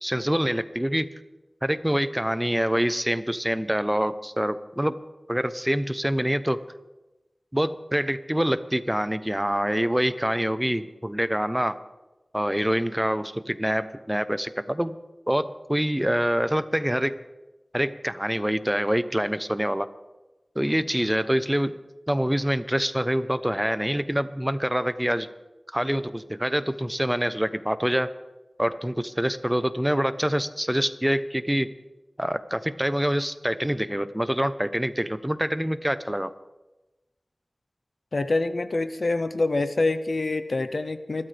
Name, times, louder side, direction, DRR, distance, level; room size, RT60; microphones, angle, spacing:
voice 1, 0.0-1.1 1.6-5.0 5.3-6.6 7.5-11.8 12.3-15.0 15.3-17.2 17.7-19.9 20.6-21.8 22.1-25.3 25.7-28.1 28.6-31.7 32.2-36.3, equal, 10° right, 12 dB, 0.8 m, -25 dB
voice 2, 38.1-41.3, left 2 dB, 75° left, 11 dB, 0.7 m, -26 dB
27.0 x 13.0 x 3.4 m, 1.1 s
wide cardioid pair, 50°, 0 cm